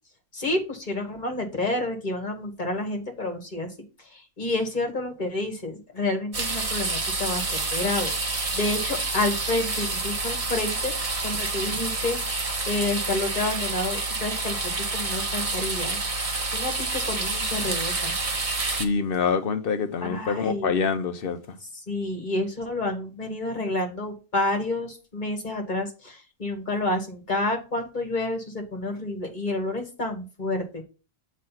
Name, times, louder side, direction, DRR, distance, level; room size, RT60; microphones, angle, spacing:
voice 1, 0.3-10.9 11.2-16.0 16.5-18.1 20.0-20.9 21.9-30.8, left 2 dB, 50° left, 1.6 m, -29 dB
sound 1, 6.3-18.8, right 3 dB, 35° right, 0.9 m, -28 dB
voice 2, 18.6-21.6, left 5 dB, 65° left, 1.0 m, -26 dB
7.6 x 3.1 x 5.7 m
omnidirectional pair, 1.0 m